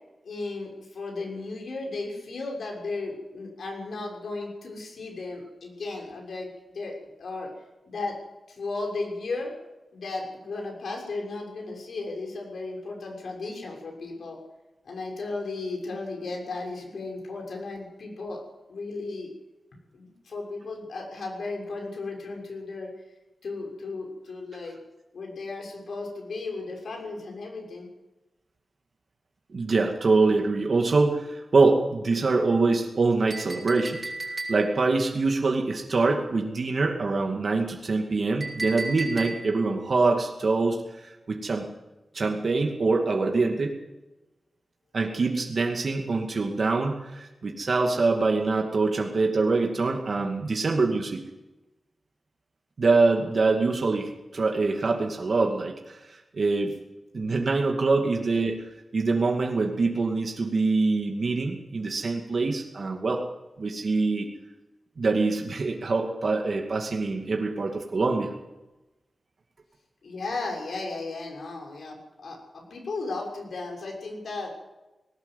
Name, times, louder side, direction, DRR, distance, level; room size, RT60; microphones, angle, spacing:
voice 1, 0.2-7.5 7.9-8.2 8.5-9.5 9.9-14.4 14.8-18.4 18.7-19.3 19.9-22.9 23.4-24.8 25.1-27.9 70.0-74.5, left 3 dB, 85° left, 0 dB, 6.7 m, -35 dB
voice 2, 29.5-34.0 34.3-40.8 41.3-41.7 42.1-43.7 44.9-51.2 52.8-56.0 56.3-56.7 57.1-58.6 58.9-63.2 63.6-64.3 65.0-68.3, right 3 dB, 55° right, 2 dB, 2.4 m, -24 dB
Chink clink, 33.3-34.9 38.4-39.7, right 2 dB, 25° right, 6.3 m, -35 dB
19.0 x 18.0 x 8.2 m, 1.0 s
wide cardioid pair, 110°, 0 cm